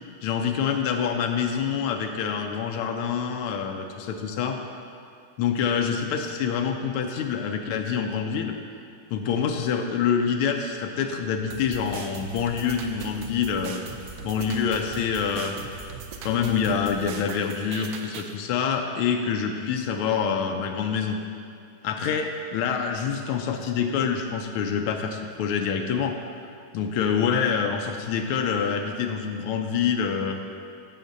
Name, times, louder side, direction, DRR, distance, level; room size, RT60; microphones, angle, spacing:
voice 1, 0.2-4.6 5.4-8.6 9.1-13.8 14.2-15.6 16.2-21.2 21.8-26.2 26.7-30.4, left 7 dB, 90° left, 4 dB, 1.5 m, -26 dB
sound 1, 11.5-18.3, right 5 dB, 75° right, 1.3 m, -39 dB
14.5 x 5.8 x 2.6 m, 2.3 s
omnidirectional pair, 2.3 m